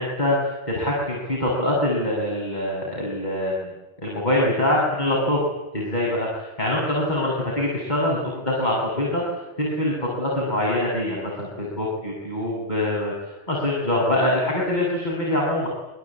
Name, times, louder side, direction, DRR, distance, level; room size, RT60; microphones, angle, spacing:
voice 1, 0.0-3.7 4.0-5.4 5.7-9.2 9.6-15.7, left 1 dB, 40° left, -3 dB, 7.3 m, -24 dB
28.0 x 22.5 x 8.8 m, 1.0 s
omnidirectional pair, 1.2 m